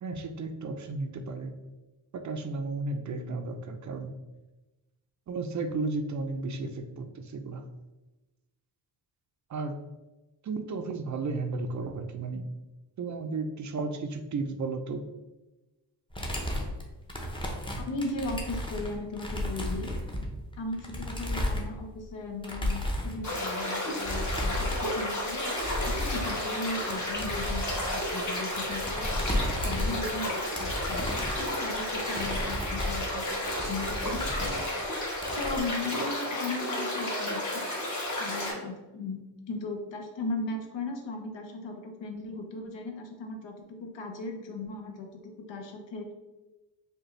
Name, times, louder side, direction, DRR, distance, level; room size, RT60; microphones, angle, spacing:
voice 1, 0.0-1.5 2.1-4.1 5.3-7.7 9.5-9.8 10.4-12.5 13.0-15.0, right 3 dB, 45° right, 7 dB, 0.4 m, -34 dB
sound 1, 16.1-22.1 22.4-23.2 24.0-25.0 25.3-26.4 26.7-30.2 30.5-34.9 35.2-35.6, left 1 dB, 10° left, 0.7 m, -33 dB
voice 2, 17.8-19.9 20.6-34.7 35.3-37.7 38.2-39.2 39.5-46.1, left 3 dB, 80° left, 3 dB, 0.8 m, -37 dB
sound 2, 23.2-38.5, left 1 dB, 40° left, 1.4 m, -32 dB
5.1 x 2.2 x 3.1 m, 1.1 s
cardioid pair, 95°, 44 cm